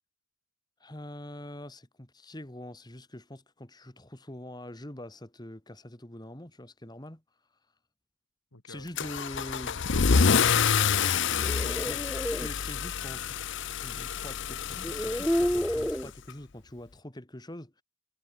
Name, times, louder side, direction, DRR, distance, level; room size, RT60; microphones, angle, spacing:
voice 1, 0.8-7.2 8.7-9.9 11.9-12.0 12.4-17.8, left 1 dB, 20° left, 2.0 m, -44 dB
voice 2, 8.5-8.9 9.8-11.8, left 3 dB, 85° left, 3.0 m, -41 dB
Car / Engine starting / Accelerating revving vroom, 9.0-16.3, left 6 dB, 55° left, 0.7 m, -27 dB
sound 1, 11.2-12.5 13.9-14.0 14.7-16.1, equal, 5° left, 0.8 m, -30 dB
head